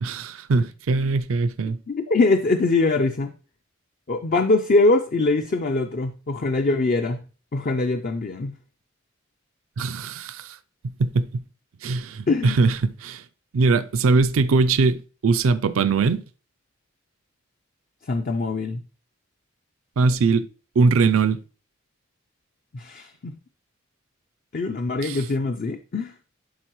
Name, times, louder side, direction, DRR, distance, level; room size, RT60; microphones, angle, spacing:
voice 1, 0.0-1.8 9.8-10.6 11.0-11.4 11.8-13.2 13.5-16.2 20.0-20.5 20.8-21.4 25.0-25.2, right 4 dB, 80° right, 0.4 m, -21 dB
voice 2, 1.9-3.3 4.1-7.2 7.5-8.5 12.3-12.6 18.1-18.8 22.7-23.3 24.5-26.1, left 3 dB, 45° left, 0.4 m, -22 dB
11.5 x 4.0 x 3.0 m
head